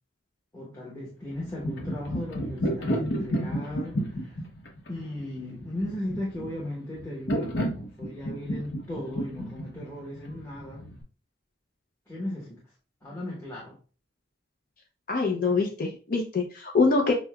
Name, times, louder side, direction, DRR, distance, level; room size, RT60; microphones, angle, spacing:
voice 1, 0.5-4.4 4.9-10.9 12.1-12.6 13.0-13.8, left 1 dB, 15° left, -7 dB, 1.0 m, -36 dB
sound 1, 1.3-11.0, equal, 75° left, 0.9 m, -32 dB
voice 2, 15.1-17.1, left 4 dB, 50° left, 1 dB, 0.6 m, -24 dB
6.1 x 2.2 x 2.3 m, 0.37 s
head